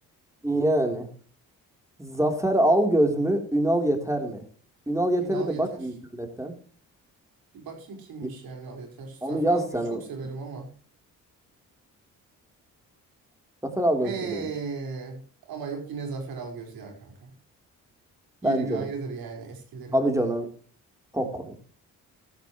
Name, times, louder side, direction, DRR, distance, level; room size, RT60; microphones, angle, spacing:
voice 1, 0.4-1.1 2.0-4.4 4.9-6.5 9.2-10.0 13.6-14.4 18.4-18.9 19.9-20.5 21.1-21.6, right 1 dB, 10° right, 4 dB, 3.7 m, -25 dB
voice 2, 5.2-5.9 7.5-10.7 14.0-15.2 15.5-17.3 18.4-20.0, right 5 dB, 75° right, 2 dB, 5.1 m, -36 dB
15.0 x 13.0 x 3.2 m, 0.41 s
cardioid pair, 70°, 35 cm